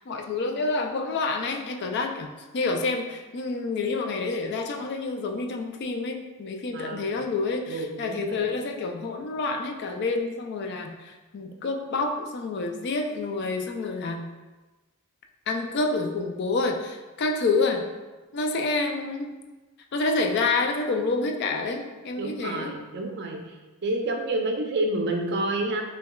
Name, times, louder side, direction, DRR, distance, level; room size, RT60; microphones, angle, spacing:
voice 1, 0.1-14.3 15.5-17.9 18.3-19.3 19.9-22.8, left 3 dB, 50° left, 4 dB, 0.4 m, -28 dB
voice 2, 6.7-7.2 7.7-8.5 22.2-25.8, right 2 dB, 50° right, 2 dB, 0.5 m, -29 dB
6.5 x 2.3 x 2.2 m, 1.2 s
head